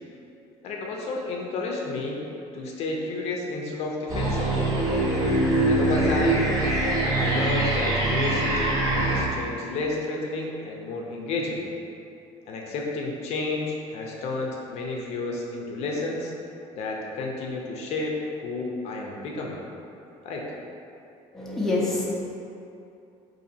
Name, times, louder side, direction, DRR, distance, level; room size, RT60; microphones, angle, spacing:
voice 1, 0.6-2.2 2.5-4.5 5.7-6.5 7.1-11.7 12.5-16.3 16.7-19.6 20.2-20.5, left 3 dB, 55° left, -1 dB, 0.5 m, -31 dB
sound 1, 4.1-9.2, right 2 dB, 30° right, 0.8 m, -23 dB
voice 2, 21.3-22.0, left 2 dB, 5° left, -6 dB, 0.5 m, -26 dB
3.9 x 2.6 x 2.7 m, 2.7 s
cardioid pair, 150°, 13 cm